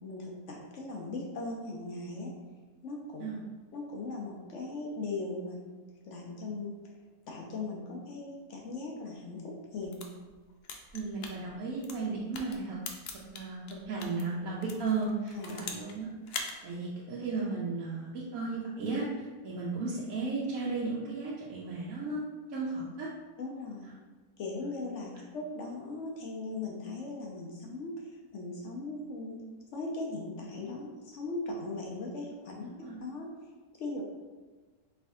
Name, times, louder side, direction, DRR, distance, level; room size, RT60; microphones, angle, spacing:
voice 1, 0.0-2.3 2.8-3.3 3.7-5.6 6.0-6.7 7.3-10.0 15.3-15.6 23.4-23.9 24.4-29.4 29.7-32.7 33.0-33.3 33.8-34.0, left 3 dB, 60° left, -1 dB, 0.8 m, -39 dB
sound 1, 9.7-14.2 14.6-16.0 16.2-16.5, left 5 dB, 85° left, 0.5 m, -42 dB
voice 2, 10.9-12.8 13.3-13.6 13.9-16.1 16.6-22.2 22.5-23.1 32.8-33.0, right 3 dB, 70° right, -6 dB, 1.0 m, -34 dB
4.5 x 3.3 x 2.7 m, 1.3 s
omnidirectional pair, 1.6 m